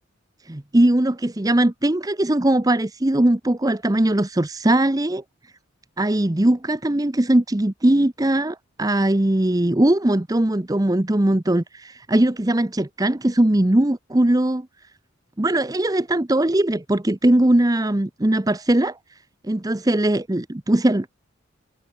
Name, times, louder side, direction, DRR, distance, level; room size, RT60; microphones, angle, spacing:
voice 1, 0.5-5.2 6.0-14.7 15.4-19.0 19.4-21.1, right 1 dB, 20° right, 0.7 m, -20 dB
head